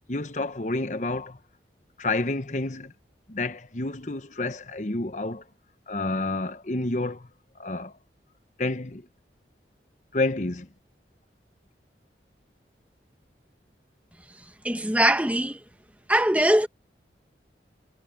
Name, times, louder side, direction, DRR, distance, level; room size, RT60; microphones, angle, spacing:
voice 1, 0.1-1.4 2.0-2.9 3.3-5.4 5.9-7.3 7.6-7.9 8.6-9.0 10.1-10.7, left 2 dB, 45° left, 1.0 m, -29 dB
voice 2, 14.6-15.6 16.1-16.7, right 1 dB, 10° right, 1.3 m, -21 dB
head